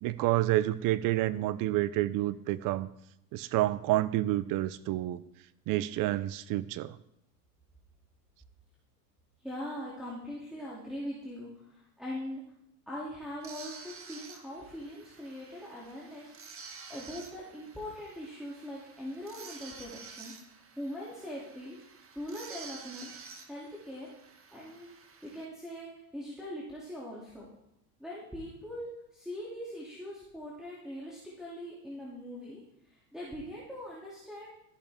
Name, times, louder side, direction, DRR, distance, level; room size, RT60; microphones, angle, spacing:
voice 1, 0.0-2.9 3.3-5.2 5.7-6.9, right 15 dB, 45° right, 17 dB, 0.6 m, -29 dB
voice 2, 9.4-12.4 12.9-21.8 22.1-23.1 23.4-24.1 24.5-24.9 25.2-27.5 28.0-34.6, equal, ahead, -7 dB, 2.7 m, -42 dB
sound 1, 13.4-25.5, right 5 dB, 25° right, 1.5 m, -50 dB
13.5 x 11.0 x 3.6 m, 0.79 s
hypercardioid pair, 100°, 48 cm